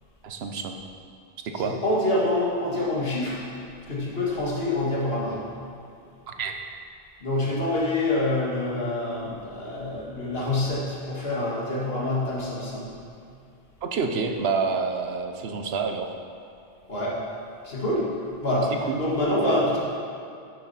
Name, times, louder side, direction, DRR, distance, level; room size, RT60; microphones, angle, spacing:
voice 1, 0.2-0.8 1.4-1.8 6.3-6.6 13.8-16.2 18.9-19.0 19.4-19.6, right 5 dB, 80° right, 5 dB, 1.0 m, -28 dB
voice 2, 1.6-3.4 3.9-5.4 7.2-12.9 16.9-17.2 17.6-18.1 18.4-19.8, left 1 dB, 70° left, -6 dB, 2.0 m, -26 dB
11.0 x 6.6 x 4.2 m, 2.5 s
omnidirectional pair, 1.0 m